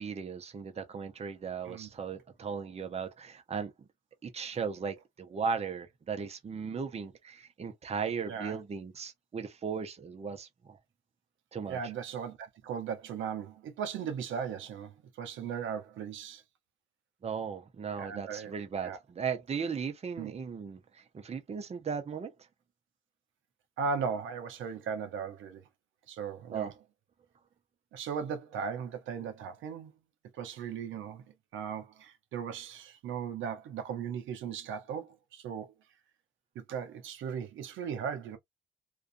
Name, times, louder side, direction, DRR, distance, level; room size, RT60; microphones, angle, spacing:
voice 1, 0.0-3.7 4.2-10.8 11.5-11.8 17.2-22.3 26.5-26.7, right 6 dB, 30° right, 0.7 m, -37 dB
voice 2, 8.3-8.6 11.7-16.4 18.0-18.5 18.8-19.0 20.2-20.3 23.8-25.6 26.1-26.7 27.9-29.9 30.3-31.2 31.5-35.7 36.6-38.4, right 6 dB, 75° right, 0.6 m, -37 dB
2.4 x 2.3 x 2.5 m
cardioid pair, 90°, 20 cm